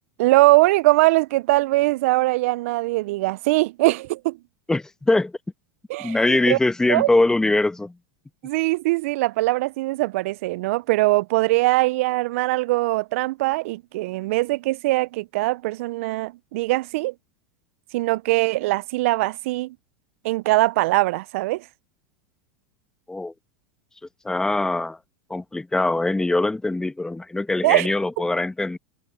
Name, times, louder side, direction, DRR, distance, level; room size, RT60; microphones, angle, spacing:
voice 1, 0.2-4.4 5.9-6.6 6.9-7.1 8.4-17.1 17.9-19.8 20.2-21.7 27.6-27.9, right 20 dB, 65° right, 0.4 m, -21 dB
voice 2, 4.7-5.3 6.0-7.9 23.1-23.3 24.2-25.0 25.3-28.8, left 2 dB, 10° left, 1.1 m, -22 dB
hypercardioid pair, 105°, 8 cm